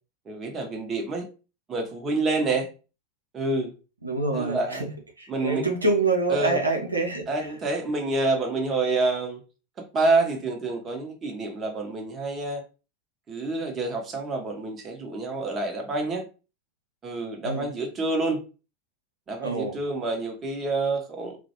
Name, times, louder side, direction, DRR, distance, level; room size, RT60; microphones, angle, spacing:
voice 1, 0.3-1.3 1.7-2.7 3.3-3.7 4.3-4.9 5.3-5.7 6.3-6.6 7.3-9.4 9.8-12.6 13.3-16.2 17.0-18.4 19.3-21.4, right 3 dB, 25° right, 0.7 m, -27 dB
voice 2, 4.0-4.9 5.2-7.6 17.4-17.7 19.4-19.7, right 3 dB, 85° right, 0.5 m, -26 dB
2.3 x 2.1 x 2.7 m
figure-of-eight pair, 85°, 0 cm